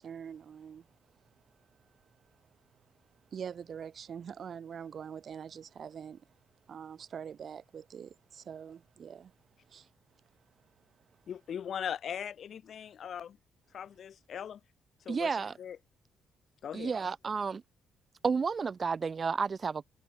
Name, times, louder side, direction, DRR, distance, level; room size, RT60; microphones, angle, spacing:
voice 1, 0.0-11.3, right 7 dB, 55° right, 6.2 m, -46 dB
voice 2, 11.3-13.4 13.7-14.6 15.0-15.3 15.6-15.8 16.6-16.9, left 8 dB, 60° left, 4.8 m, -39 dB
voice 3, 15.1-15.5 16.7-17.6 18.2-19.8, right 5 dB, 40° right, 2.2 m, -31 dB
cardioid pair, 90°, 0 cm